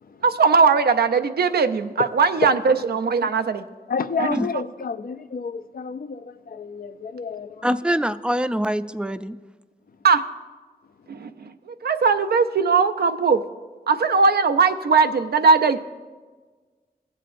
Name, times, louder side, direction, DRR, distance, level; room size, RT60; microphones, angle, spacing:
voice 1, 0.2-3.6 4.2-4.3 10.0-10.2 11.1-13.4 13.9-15.8, right 5 dB, 85° right, 0.4 m, -19 dB
voice 2, 3.9-7.7, left 6 dB, 65° left, 0.4 m, -31 dB
voice 3, 7.6-9.4, equal, 5° right, 0.4 m, -24 dB
17.0 x 7.5 x 2.5 m
cardioid pair, 50°, 16 cm